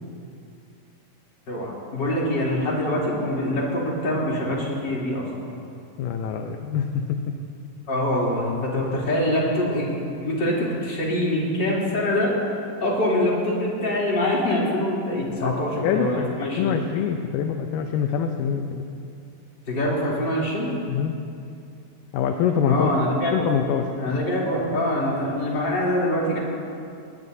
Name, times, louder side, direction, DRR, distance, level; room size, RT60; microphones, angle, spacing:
voice 1, 1.5-5.2 7.9-12.3 12.8-16.7 19.7-20.7 22.6-23.5 24.0-26.4, left 1 dB, 30° left, -5 dB, 3.6 m, -24 dB
voice 2, 6.0-7.3 15.4-15.5 15.8-18.9 20.9-21.1 22.1-22.9 23.3-23.9, left 7 dB, 75° left, 5 dB, 2.2 m, -25 dB
20.5 x 19.5 x 2.7 m, 2.4 s
omnidirectional pair, 4.2 m